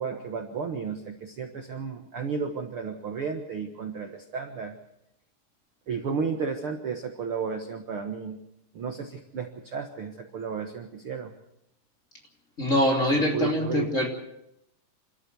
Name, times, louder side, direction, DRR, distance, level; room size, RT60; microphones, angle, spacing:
voice 1, 0.0-4.7 5.9-8.4 8.7-11.3 13.1-13.9, right 5 dB, 50° right, 4 dB, 1.8 m, -33 dB
voice 2, 12.6-14.1, left 1 dB, 20° left, 0 dB, 3.1 m, -23 dB
28.0 x 14.0 x 7.0 m, 0.81 s
omnidirectional pair, 4.0 m